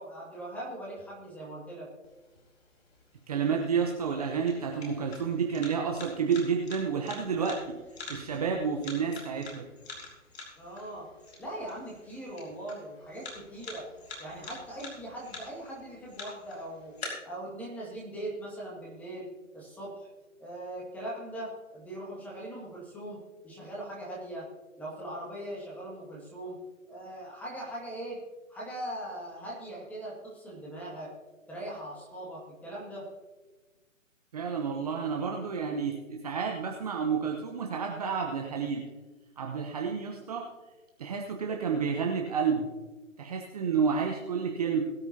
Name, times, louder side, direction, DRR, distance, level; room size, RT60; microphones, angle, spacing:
voice 1, 0.0-1.9 10.6-11.1 11.4-13.9 14.2-16.9 17.2-20.1 20.4-23.2 23.4-24.5 24.8-26.6 26.9-28.2 28.5-31.1 31.5-33.1, right 1 dB, 5° left, -4 dB, 2.1 m, -40 dB
sound 1, 2.0-17.0, left 3 dB, 50° left, 4.4 m, -48 dB
voice 2, 3.3-7.7 8.1-9.6 34.3-38.8 39.4-40.5 41.0-42.7 43.2-44.8, right 6 dB, 30° right, 1 dB, 1.0 m, -30 dB
20.5 x 9.9 x 2.8 m, 1.2 s
figure-of-eight pair, 150°, 40 cm